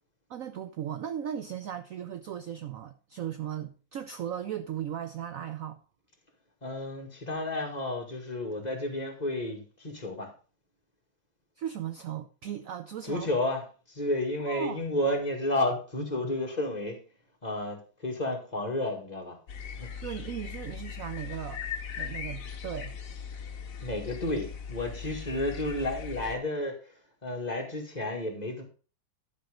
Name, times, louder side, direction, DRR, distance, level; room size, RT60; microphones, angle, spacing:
voice 1, 0.3-5.8 11.6-13.3 14.4-14.8 20.0-21.6 22.0-22.9, right 9 dB, 75° right, 0.7 m, -37 dB
voice 2, 6.6-10.3 13.1-17.0 17.4-19.4 19.8-19.9 23.8-26.8 27.2-28.6, left 1 dB, 20° left, 2.0 m, -31 dB
sound 1, 19.5-26.4, left 7 dB, 50° left, 1.3 m, -39 dB
11.0 x 5.7 x 5.1 m
omnidirectional pair, 2.2 m